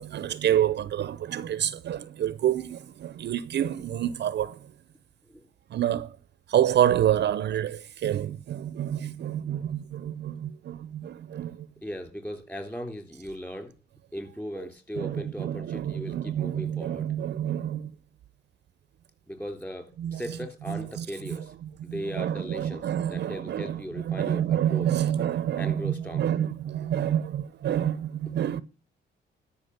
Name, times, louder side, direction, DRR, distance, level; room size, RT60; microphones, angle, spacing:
voice 1, 0.0-4.7 5.7-6.1 6.5-11.7 15.0-17.9 20.0-20.4 20.7-28.6, right 10 dB, 60° right, 0.6 m, -28 dB
voice 2, 11.8-13.7 14.1-17.1 19.3-21.5 21.8-24.9 25.6-26.3, equal, 10° left, 3.7 m, -38 dB
12.5 x 6.0 x 8.0 m
cardioid pair, 90°, 20 cm